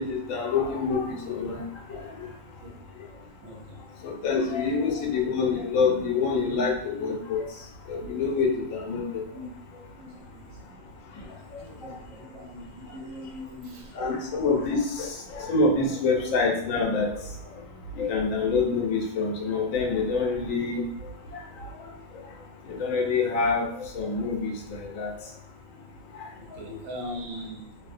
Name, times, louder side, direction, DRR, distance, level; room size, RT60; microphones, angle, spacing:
voice 1, 0.0-1.6 2.2-2.3 4.0-7.4 7.9-9.2 14.0-17.1 18.0-20.8 22.8-23.7 23.9-24.5 24.9-25.1, left 4 dB, 85° left, 1 dB, 1.0 m, -26 dB
voice 2, 3.4-3.9 4.7-5.0 9.3-9.6 10.0-10.8 11.2-14.8 26.3-27.7, equal, 85° right, 1 dB, 1.0 m, -42 dB
2.7 x 2.1 x 2.4 m, 0.69 s
omnidirectional pair, 1.3 m